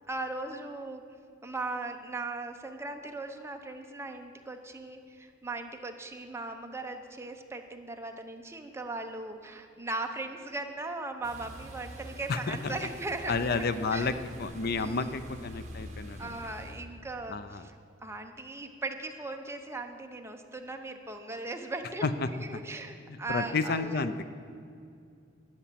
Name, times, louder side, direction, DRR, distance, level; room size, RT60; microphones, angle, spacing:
voice 1, 0.1-1.0 1.4-13.6 13.9-14.1 14.8-15.1 16.2-17.7 18.0-24.0, right 2 dB, 15° right, 4 dB, 0.8 m, -38 dB
sound 1, 11.2-16.8, right 1 dB, 35° right, 1.9 m, -45 dB
voice 2, 12.3-12.8 13.3-14.1 14.4-16.4 17.3-17.6 22.0-22.3 23.1-24.1, left 4 dB, 50° left, 11 dB, 0.5 m, -31 dB
12.5 x 9.0 x 7.5 m, 2.5 s
head